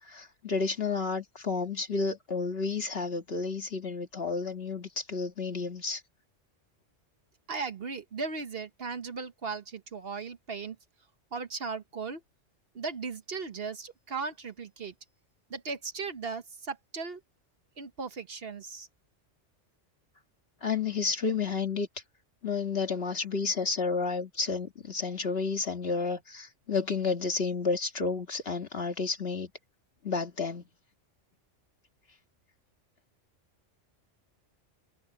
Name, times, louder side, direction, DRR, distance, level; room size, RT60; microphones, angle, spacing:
voice 1, 0.1-6.0 20.6-21.9 22.4-29.5 30.0-30.6, left 4 dB, 50° left, 2.1 m, -31 dB
voice 2, 7.5-10.8 11.3-12.2 12.7-14.9 15.5-17.2 17.8-18.9, right 4 dB, 50° right, 1.2 m, -37 dB
omnidirectional pair, 1.3 m